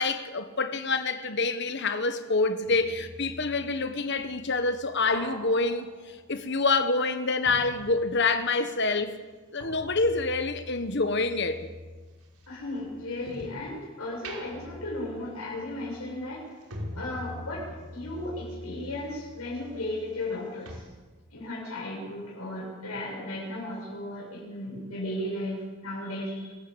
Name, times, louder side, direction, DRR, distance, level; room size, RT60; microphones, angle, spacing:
voice 1, 0.0-9.2 9.5-11.7, left 3 dB, 50° left, 1.3 m, -27 dB
sound 1, 2.6-8.6 8.9-13.7 14.1-20.4 20.7-20.8, equal, 85° right, 5.1 m, -45 dB
voice 2, 12.5-16.5 16.9-20.8 21.3-26.5, left 1 dB, 90° left, 7.0 m, -35 dB
26.0 x 14.5 x 8.8 m
head